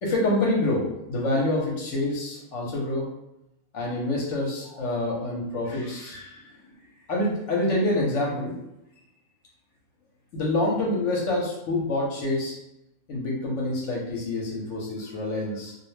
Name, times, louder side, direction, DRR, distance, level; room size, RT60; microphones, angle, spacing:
voice 1, 0.0-3.1 3.7-6.7 7.1-8.6 10.3-12.5 13.1-15.7, left 1 dB, 60° left, -3 dB, 0.9 m, -27 dB
2.5 x 2.0 x 3.1 m, 0.84 s
omnidirectional pair, 1.5 m